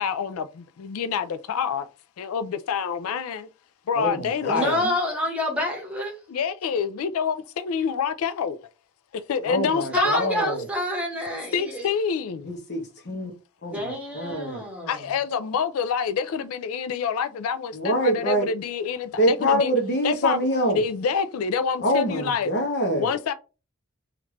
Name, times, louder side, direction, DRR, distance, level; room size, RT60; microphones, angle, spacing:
voice 1, 0.0-1.9 2.2-3.5 3.9-4.7 6.3-8.6 9.1-10.3 11.5-12.4 14.9-19.7 20.0-20.4 20.7-22.5 23.0-23.3, left 6 dB, 85° left, 0.4 m, -27 dB
voice 2, 4.0-4.8 9.5-10.6 12.5-12.8 13.1-13.3 13.6-14.6 17.7-18.5 19.2-20.8 21.8-23.1, equal, 55° left, 0.9 m, -25 dB
voice 3, 4.5-6.1 9.9-11.9 13.7-15.1, equal, 5° right, 1.2 m, -27 dB
3.2 x 2.4 x 3.1 m
head